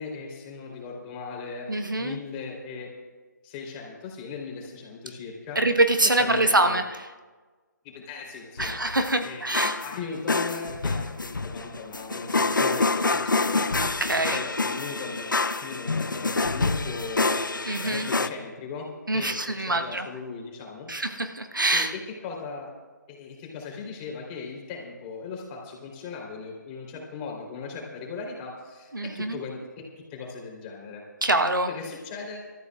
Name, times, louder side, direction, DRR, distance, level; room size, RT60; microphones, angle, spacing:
voice 1, 0.0-1.7 2.0-2.9 3.4-5.6 6.2-6.9 7.8-8.7 9.2-14.0 14.3-20.9 21.7-22.7 23.1-29.8 30.1-31.0 31.7-32.4, left 4 dB, 25° left, 0 dB, 3.6 m, -38 dB
voice 2, 1.7-2.2 5.5-6.8 8.6-9.7 14.0-14.4 17.7-18.1 19.1-20.0 20.9-21.9 28.9-29.4 31.2-31.7, right 2 dB, 90° right, 7 dB, 1.2 m, -24 dB
sound 1, 8.6-18.3, left 3 dB, 85° left, 0.7 m, -27 dB
28.0 x 14.0 x 2.4 m, 1.3 s
figure-of-eight pair, 145°, 10 cm